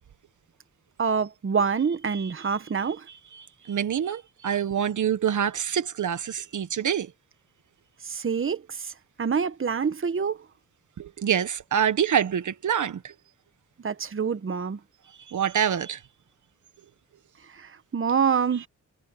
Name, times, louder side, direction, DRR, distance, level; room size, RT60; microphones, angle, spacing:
voice 1, 1.0-3.0 8.1-8.9 9.2-10.4 13.8-14.8 17.6-18.7, right 6 dB, 40° right, 1.4 m, -26 dB
voice 2, 2.1-2.5 3.1-7.1 11.0-13.1 15.3-16.0, right 8 dB, 70° right, 1.4 m, -26 dB
cardioid pair, 70°, 31 cm